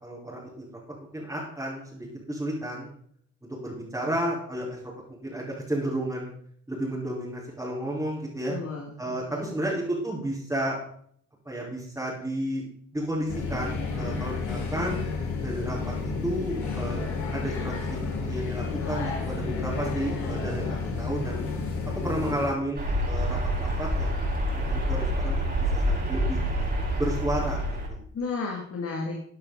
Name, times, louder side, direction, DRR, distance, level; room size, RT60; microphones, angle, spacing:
voice 1, 0.0-0.6 1.1-2.9 3.6-4.8 5.1-6.3 6.7-8.6 9.0-10.8 11.4-12.6 12.9-15.0 15.4-21.5 21.8-24.2 24.5-26.4 27.0-27.6 27.9-28.0, right 1 dB, 10° right, -7 dB, 4.7 m, -32 dB
voice 2, 8.5-9.7 28.1-29.2, left 4 dB, 50° left, 0 dB, 2.6 m, -33 dB
sound 1, 13.3-22.5, left 4 dB, 70° left, 4.7 m, -31 dB
sound 2, 22.7-27.9, equal, 35° right, 4.9 m, -27 dB
15.0 x 9.2 x 4.0 m, 0.63 s
cardioid pair, 90°, 30 cm